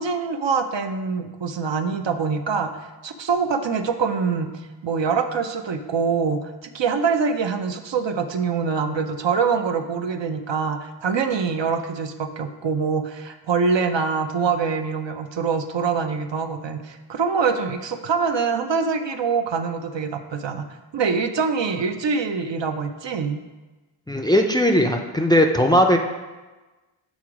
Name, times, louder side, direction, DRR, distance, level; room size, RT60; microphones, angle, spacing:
voice 1, 0.0-2.7 3.0-4.5 4.8-20.7 20.9-23.4, right 5 dB, 65° right, 7 dB, 0.6 m, -24 dB
voice 2, 24.1-26.0, equal, 10° left, 4 dB, 0.4 m, -18 dB
6.4 x 3.8 x 4.8 m, 1.2 s
wide cardioid pair, 55°, 48 cm